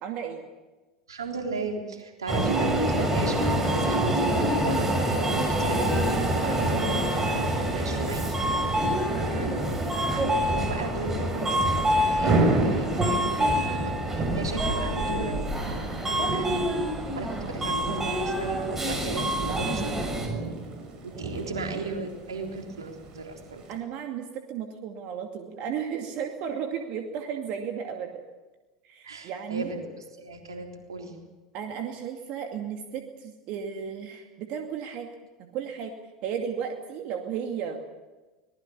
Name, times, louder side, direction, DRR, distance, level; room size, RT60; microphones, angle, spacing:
voice 1, 0.0-0.4 8.9-9.5 21.1-21.5 23.7-28.2 28.8-29.7 31.5-35.1 35.4-35.9 36.2-37.9, right 7 dB, 55° right, 4 dB, 2.4 m, -34 dB
voice 2, 1.1-7.5 7.7-8.2 8.5-9.7 10.1-15.4 16.1-16.6 17.2-20.1 21.0-23.6 29.0-29.8 30.2-31.1, right 3 dB, 85° right, 2 dB, 3.7 m, -35 dB
Subway metro underground, 2.3-20.3, right 1 dB, 15° right, 6.5 m, -26 dB
Thunder / Rain, 11.1-23.8, right 2 dB, 40° right, 7.2 m, -32 dB
24.5 x 19.5 x 7.1 m, 1.2 s
hypercardioid pair, 80°, 2 cm